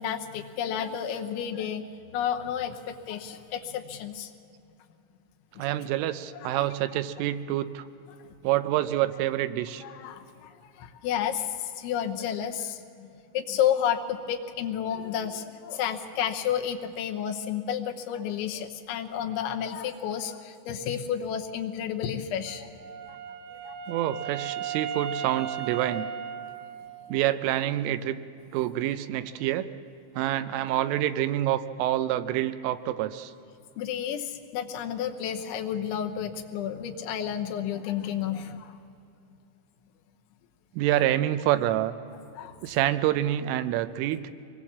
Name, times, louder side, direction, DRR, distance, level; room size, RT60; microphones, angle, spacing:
voice 1, 0.0-1.8 2.1-4.3 5.6-5.7 6.4-6.6 9.8-10.5 10.8-13.1 13.3-22.7 23.1-23.2 23.5-23.7 30.7-30.8 33.8-38.8 42.3-42.5, left 9 dB, 75° left, 4 dB, 3.1 m, -31 dB
voice 2, 5.6-7.9 8.4-9.8 23.9-26.1 27.1-28.2 28.5-29.7 30.1-33.3 40.7-42.0 42.6-44.2, right 13 dB, 85° right, 11 dB, 3.2 m, -27 dB
Wind instrument woodwind instrument, 22.5-27.2, right 8 dB, 65° right, 3.6 m, -36 dB
25.0 x 21.0 x 7.3 m, 2.7 s
omnidirectional pair, 5.7 m